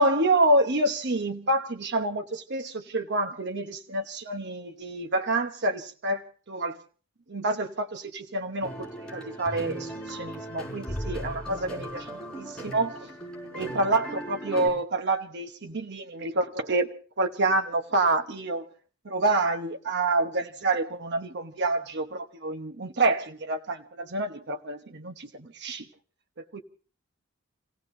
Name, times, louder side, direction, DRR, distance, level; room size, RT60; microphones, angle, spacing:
voice 1, 0.0-6.8 7.3-13.1 13.5-16.9 17.2-18.7 19.0-25.9 26.4-26.6, right 2 dB, 55° right, 1.0 m, -28 dB
sound 1, 8.6-14.7, right 1 dB, 5° left, 5.3 m, -37 dB
29.5 x 16.5 x 2.7 m
head